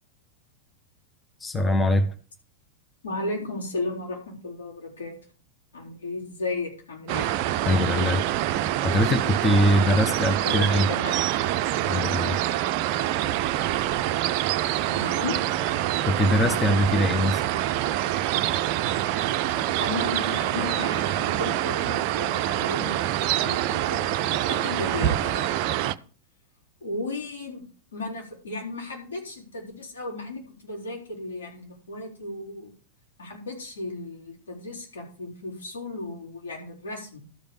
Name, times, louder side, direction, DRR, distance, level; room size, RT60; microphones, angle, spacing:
voice 1, 1.4-2.1 7.7-8.2 8.8-10.9 11.9-12.4 16.0-17.4, left 1 dB, 15° left, 0.8 m, -22 dB
voice 2, 3.0-5.2 5.7-7.3 10.2-11.2 14.9-15.4 19.8-23.0 23.4-26.0 26.8-27.6 27.9-32.7 33.2-37.2, left 2 dB, 65° left, 4.2 m, -35 dB
sound 1, 7.1-25.9, right 13 dB, 45° right, 0.5 m, -26 dB
12.5 x 5.2 x 6.8 m
figure-of-eight pair, 90°, 0 cm